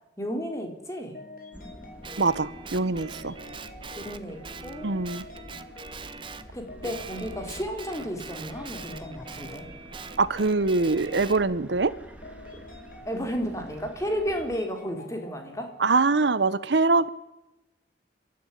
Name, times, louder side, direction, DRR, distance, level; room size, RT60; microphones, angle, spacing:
voice 1, 0.2-1.2 4.0-4.4 4.6-4.9 6.5-9.7 13.1-15.7, equal, 15° left, 3.8 m, -33 dB
sound 1, 1.1-15.9, left 2 dB, 50° left, 4.8 m, -48 dB
sound 2, 1.5-14.6, equal, 10° right, 2.8 m, -48 dB
Guitar, 2.0-6.5 6.8-11.4, right 5 dB, 30° right, 1.0 m, -43 dB
voice 2, 2.2-3.3 4.8-5.3 10.2-11.9 15.8-17.1, right 3 dB, 80° right, 0.9 m, -23 dB
29.0 x 13.0 x 10.0 m
head